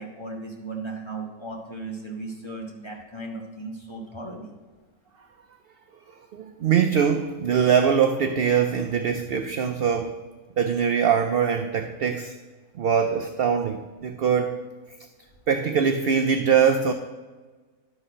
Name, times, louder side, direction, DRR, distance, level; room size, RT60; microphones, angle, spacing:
voice 1, 0.0-4.5, right 2 dB, 20° left, -1 dB, 1.3 m, -36 dB
voice 2, 6.3-10.2 10.6-12.3 12.8-14.6 15.5-16.9, right 7 dB, 65° right, 6 dB, 0.6 m, -22 dB
12.0 x 4.1 x 5.1 m, 1.3 s
omnidirectional pair, 1.4 m